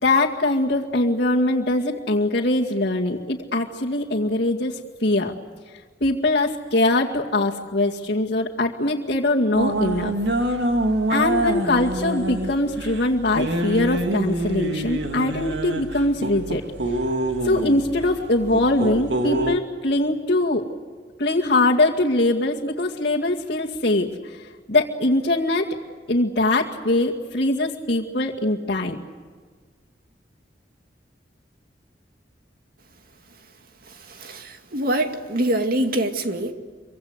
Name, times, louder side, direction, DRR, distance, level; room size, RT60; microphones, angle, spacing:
voice 1, 0.0-4.7 5.0-5.3 6.0-10.1 11.1-16.6 17.4-20.6 21.2-24.4 24.7-25.7 26.1-29.0, left 2 dB, 60° left, -4 dB, 2.2 m, -22 dB
sound 1, 9.5-19.6, right 1 dB, 70° right, 2.5 m, -26 dB
voice 2, 34.1-36.5, right 1 dB, 55° right, 5 dB, 2.3 m, -24 dB
26.0 x 25.0 x 8.2 m, 1.5 s
head